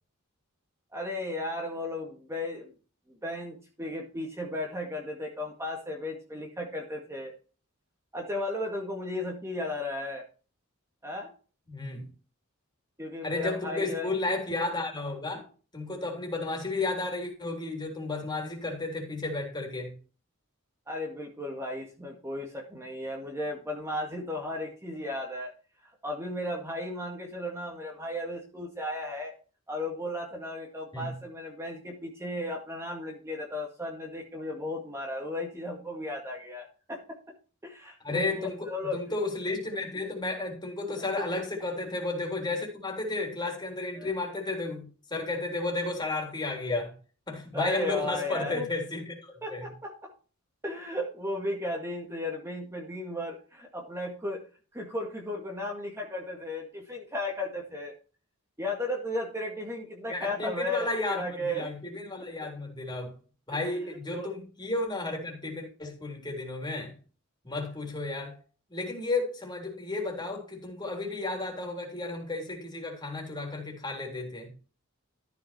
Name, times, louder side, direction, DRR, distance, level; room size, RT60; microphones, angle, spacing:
voice 1, 0.9-2.7 3.1-7.3 8.1-10.3 11.0-11.3 13.0-14.1 20.9-25.5 25.8-29.3 29.7-37.2 37.6-39.0 41.2-41.3 44.0-44.1 47.5-48.7 49.4-50.1 50.6-54.4 54.7-57.9 58.6-61.7 62.2-62.5 63.6-64.3, left 1 dB, 15° right, 1.9 m, -35 dB
voice 2, 11.7-12.1 13.2-20.0 30.9-31.1 38.0-46.9 47.3-49.7 60.1-63.1 63.5-67.0 67.4-68.4 68.7-74.5, left 2 dB, 20° left, 3.6 m, -33 dB
13.5 x 6.0 x 4.3 m
head